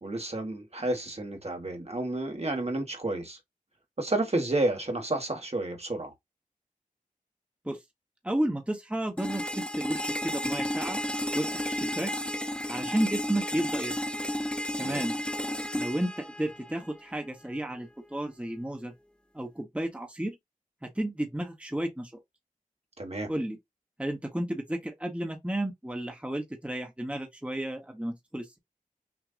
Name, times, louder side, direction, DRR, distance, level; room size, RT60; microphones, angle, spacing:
voice 1, 0.0-3.4 4.0-6.1 14.8-15.0 23.0-23.3, right 2 dB, 45° right, 1.4 m, -31 dB
voice 2, 8.2-11.0 11.3-12.1 12.7-14.0 14.8-15.2 15.7-18.9 19.3-20.4 20.8-22.1 23.3-23.6 24.0-28.6, right 1 dB, 10° right, 1.0 m, -32 dB
sound 1, 9.2-17.2, equal, 5° left, 0.7 m, -32 dB
6.1 x 2.6 x 2.5 m
wide cardioid pair, 50°, 14 cm